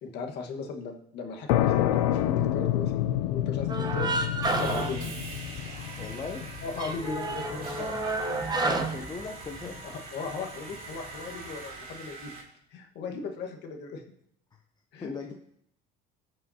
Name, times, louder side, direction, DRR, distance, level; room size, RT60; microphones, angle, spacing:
voice 1, 0.0-4.1 4.6-5.1 6.6-8.1 9.8-12.3 12.7-14.0 14.9-15.3, left 4 dB, 60° left, 2 dB, 1.5 m, -38 dB
sound 1, 1.5-8.9, left 12 dB, 90° left, 0.4 m, -29 dB
sound 2, 3.7-5.8 6.1-6.2 6.6-9.8, right 3 dB, 20° right, 1.0 m, -30 dB
Sawing, 4.4-12.4, right 3 dB, 50° right, 2.9 m, -43 dB
voice 2, 6.0-6.4 8.5-9.8 15.0-15.3, left 4 dB, 20° left, 3 dB, 0.7 m, -38 dB
14.0 x 5.5 x 2.8 m, 0.72 s
supercardioid pair, 105°, 19 cm